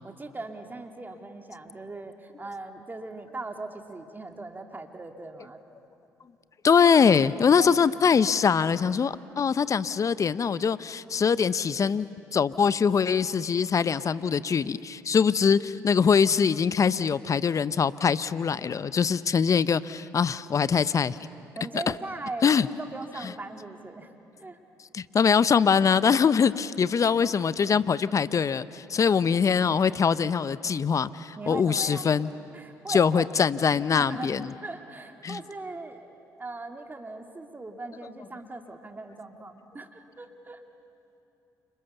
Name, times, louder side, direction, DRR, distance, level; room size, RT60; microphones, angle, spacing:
voice 1, 0.0-5.6 7.6-7.7 21.5-24.1 24.4-24.6 26.2-26.3 27.0-27.1 31.4-32.2 32.5-33.3 33.7-36.0 36.4-40.6, right 2 dB, 25° right, 5 dB, 2.8 m, -39 dB
voice 2, 6.6-21.2 22.4-22.7 24.9-32.3 32.9-34.5 35.2-35.4, left 6 dB, 40° left, 16 dB, 0.8 m, -23 dB
29.5 x 26.5 x 7.0 m, 2.9 s
hypercardioid pair, 55°, 8 cm